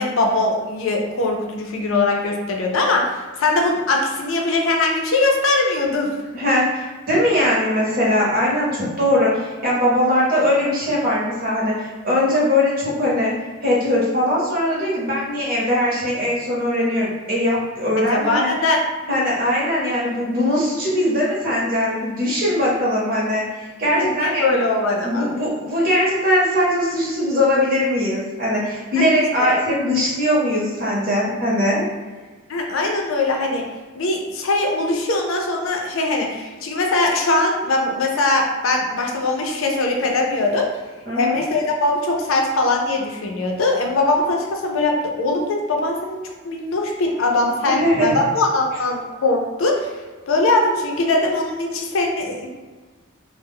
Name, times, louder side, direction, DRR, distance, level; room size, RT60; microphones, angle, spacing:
voice 1, 0.0-6.1 18.0-18.8 23.9-25.3 29.0-29.6 32.5-33.7 33.9-40.8 41.1-46.2 46.4-50.0 50.3-52.5, left 2 dB, 75° left, 1 dB, 0.4 m, -21 dB
voice 2, 6.3-13.3 13.6-18.5 19.1-24.6 25.0-31.8 41.1-41.4 47.7-48.1, left 1 dB, 40° right, -5 dB, 0.7 m, -20 dB
2.1 x 2.0 x 3.5 m, 1.3 s
head